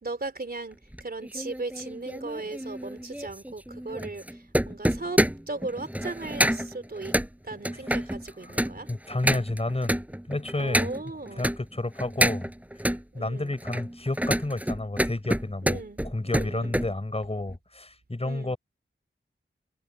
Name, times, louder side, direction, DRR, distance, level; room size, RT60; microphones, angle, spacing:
voice 1, 0.0-7.1 7.4-8.9 10.6-11.5 13.1-13.6 15.6-16.8 18.2-18.5, right 3 dB, 45° right, 3.3 m, -37 dB
sound 1, 0.9-11.6 12.0-13.0 13.5-16.9 17.2-17.6, equal, 5° right, 6.3 m, -28 dB
voice 2, 8.9-10.0 10.3-10.9 11.4-12.5 13.1-18.6, left 2 dB, 30° left, 5.9 m, -31 dB
wide cardioid pair, 65°, 21 cm